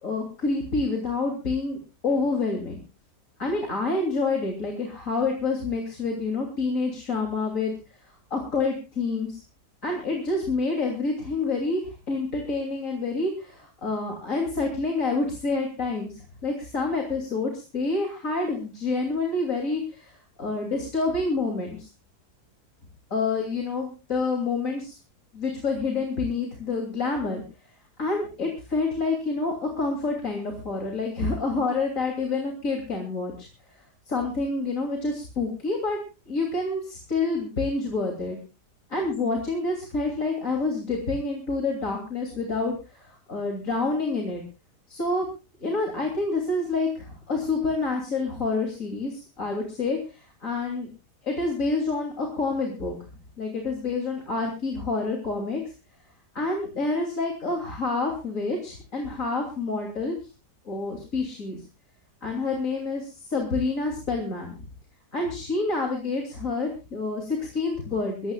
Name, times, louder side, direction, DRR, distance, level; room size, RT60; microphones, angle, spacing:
voice 1, 0.0-2.8 3.4-7.7 8.3-9.4 9.8-16.1 16.4-21.9 23.1-25.0 25.3-27.4 28.0-33.5 34.1-36.0 36.2-38.4 38.9-44.4 44.9-45.3 45.6-50.9 51.2-53.0 53.4-55.6 56.3-60.2 60.6-61.6 62.2-64.6 65.1-68.3, left 3 dB, 50° left, 1 dB, 3.3 m, -28 dB
22.5 x 16.5 x 2.4 m, 0.31 s
omnidirectional pair, 1.7 m